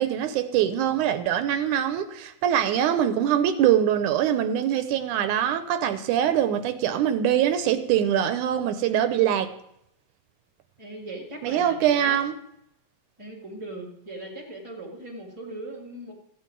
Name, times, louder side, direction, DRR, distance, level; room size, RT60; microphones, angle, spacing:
voice 1, 0.0-9.5 11.4-12.3, right 10 dB, 85° right, 10 dB, 2.3 m, -23 dB
voice 2, 10.8-12.2 13.2-16.1, right 1 dB, 15° right, -1 dB, 1.2 m, -39 dB
15.0 x 8.5 x 4.6 m, 0.79 s
omnidirectional pair, 3.5 m